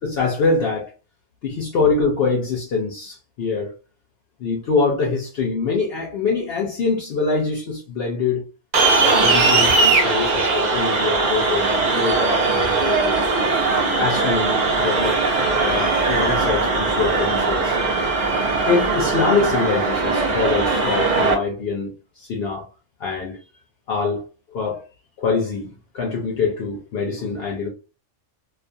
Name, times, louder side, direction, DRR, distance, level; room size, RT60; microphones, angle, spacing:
voice 1, 0.0-0.9 1.4-3.7 4.4-8.5 9.0-13.2 14.0-15.2 15.6-17.8 18.7-22.7 23.0-23.4 23.9-24.2 24.5-24.9 25.2-27.7, left 4 dB, 60° left, 0.7 m, -24 dB
sound 1, 8.7-21.3, right 3 dB, 45° right, 0.7 m, -19 dB
2.4 x 2.3 x 2.5 m
omnidirectional pair, 1.3 m